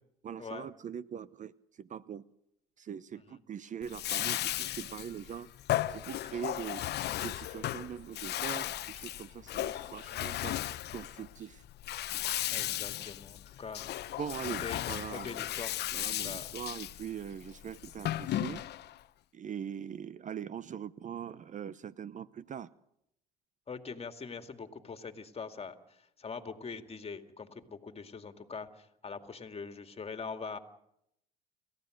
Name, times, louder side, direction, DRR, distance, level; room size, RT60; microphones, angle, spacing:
voice 1, 0.2-1.5 1.8-2.2 2.8-5.5 5.9-6.8 7.2-10.6 10.9-11.6 14.2-15.3 15.9-18.6 19.3-22.7, right 8 dB, 40° right, 18 dB, 0.7 m, -41 dB
Bathtub (filling or washing), 3.8-19.0, left 13 dB, 55° left, 0.9 m, -36 dB
voice 2, 12.5-13.8 14.6-15.7 16.2-16.5 23.7-30.6, left 5 dB, 30° left, 7 dB, 2.3 m, -43 dB
29.5 x 15.0 x 6.6 m, 0.78 s
hypercardioid pair, 70°, 20 cm